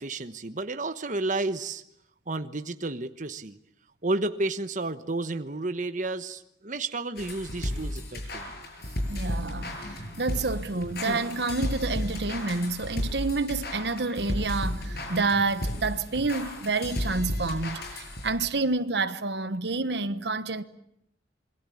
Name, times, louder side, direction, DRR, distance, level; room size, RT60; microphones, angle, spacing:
voice 1, 0.0-1.8 2.3-3.6 4.0-8.7, right 2 dB, 45° right, 1.2 m, -31 dB
sound 1, 7.2-18.5, left 1 dB, 60° left, 7.7 m, -34 dB
voice 2, 9.1-20.6, right 3 dB, 65° right, 1.3 m, -29 dB
28.0 x 23.0 x 8.6 m
head